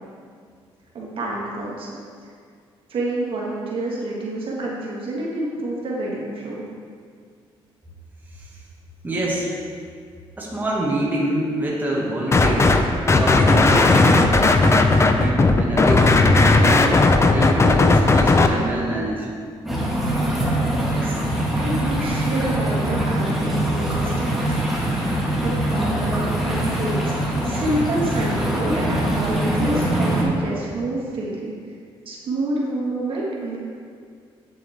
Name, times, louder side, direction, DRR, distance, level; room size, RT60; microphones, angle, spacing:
voice 1, 0.9-1.9 2.2-2.3 2.9-6.6 20.7-24.5 24.9-31.5 32.1-33.6, right 1 dB, 60° right, -4 dB, 1.7 m, -28 dB
voice 2, 9.0-9.5 10.4-12.7 13.0-14.3 15.2-19.3, right 1 dB, 15° right, -5 dB, 1.8 m, -25 dB
sound 1, 12.3-12.8 13.1-18.5, left 3 dB, 25° left, 0.6 m, -15 dB
sound 2, 19.7-30.2, right 1 dB, ahead, 1.9 m, -23 dB
8.5 x 7.3 x 3.5 m, 2.1 s
cardioid pair, 95°, 10 cm